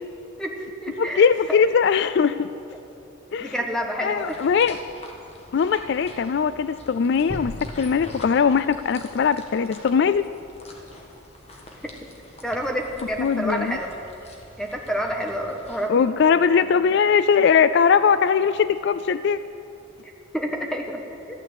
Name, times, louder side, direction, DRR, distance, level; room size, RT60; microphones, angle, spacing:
voice 1, 0.4-1.2 3.4-4.4 12.4-13.9 14.6-16.0 20.0-21.0, equal, 5° left, 1 dB, 1.4 m, -29 dB
voice 2, 1.0-2.5 3.3-3.5 4.0-4.8 5.5-10.2 13.2-13.8 15.9-19.4, left 6 dB, 55° left, 14 dB, 0.3 m, -20 dB
sound 1, 4.2-15.9, left 1 dB, 30° left, 1.6 m, -43 dB
13.0 x 12.5 x 8.2 m, 2.8 s
head